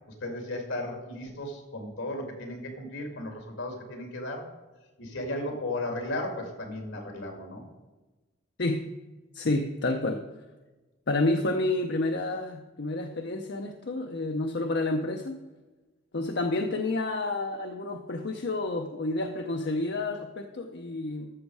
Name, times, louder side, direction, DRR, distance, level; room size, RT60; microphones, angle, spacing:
voice 1, 0.1-4.5 5.0-7.6, left 1 dB, 75° left, 3 dB, 2.3 m, -35 dB
voice 2, 9.3-10.2 11.1-15.4 16.1-21.3, left 2 dB, 55° left, 4 dB, 0.7 m, -29 dB
13.5 x 6.4 x 4.7 m, 1.2 s
head